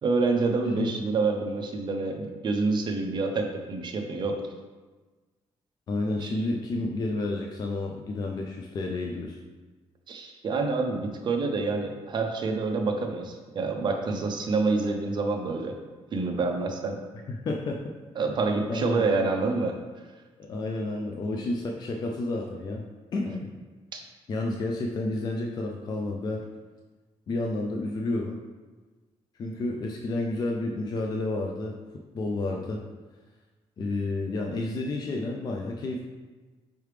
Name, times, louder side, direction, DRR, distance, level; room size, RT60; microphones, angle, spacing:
voice 1, 0.0-4.4 6.2-6.3 10.1-15.7 16.1-17.0 18.2-19.8 23.9-24.0, right 3 dB, 40° right, 3 dB, 0.5 m, -27 dB
voice 2, 5.9-9.4 17.3-17.8 18.7-19.1 20.4-23.5 24.3-26.5 27.3-28.4 29.4-31.8 32.1-32.8 33.8-36.0, left 2 dB, 35° left, 1 dB, 0.3 m, -30 dB
4.7 x 3.2 x 3.2 m, 1.3 s
cardioid pair, 145°, 12 cm